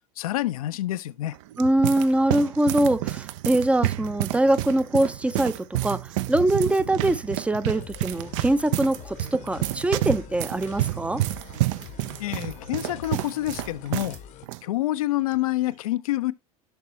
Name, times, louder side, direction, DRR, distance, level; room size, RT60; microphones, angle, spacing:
voice 1, 0.2-1.4 12.2-14.2 14.6-16.3, left 15 dB, 65° left, 0.5 m, -27 dB
sound 1, 1.3-14.2 14.4-14.6 15.3-15.6, right 15 dB, 55° right, 0.5 m, -30 dB
voice 2, 1.6-11.2, right 1 dB, 5° right, 0.5 m, -23 dB
sound 2, 7.6-14.5, left 11 dB, 40° left, 0.8 m, -44 dB
10.5 x 6.0 x 3.0 m
figure-of-eight pair, 75°, 20 cm